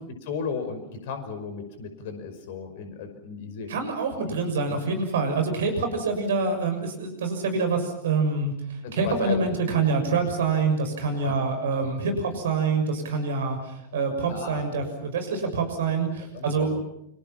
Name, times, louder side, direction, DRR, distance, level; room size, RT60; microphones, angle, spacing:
voice 1, 0.3-3.7 4.7-4.8 8.8-9.6 11.2-11.4 11.8-11.9 14.3-14.7 16.2-16.8, left 5 dB, 50° left, 8 dB, 5.5 m, -35 dB
voice 2, 3.7-16.7, right 4 dB, 60° right, 6 dB, 6.5 m, -26 dB
29.5 x 26.0 x 5.9 m, 0.77 s
figure-of-eight pair, 90°, 0 cm